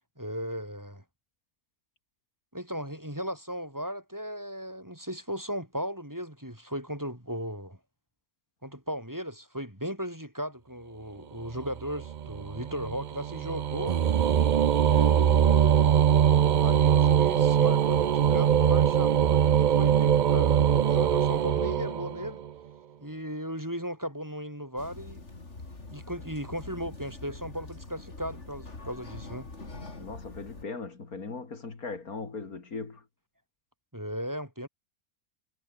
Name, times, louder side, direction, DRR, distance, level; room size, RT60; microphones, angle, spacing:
voice 1, 0.2-1.0 2.5-7.8 8.6-14.0 14.8-16.1 16.6-22.4 23.0-25.3 25.9-29.5 33.9-34.7, equal, 10° right, 5.0 m, -36 dB
sound 1, 11.6-22.5, right 9 dB, 75° right, 0.4 m, -23 dB
sound 2, 24.8-30.7, left 3 dB, 50° left, 3.9 m, -44 dB
voice 2, 30.0-33.0, left 4 dB, 85° left, 3.4 m, -39 dB
omnidirectional pair, 1.5 m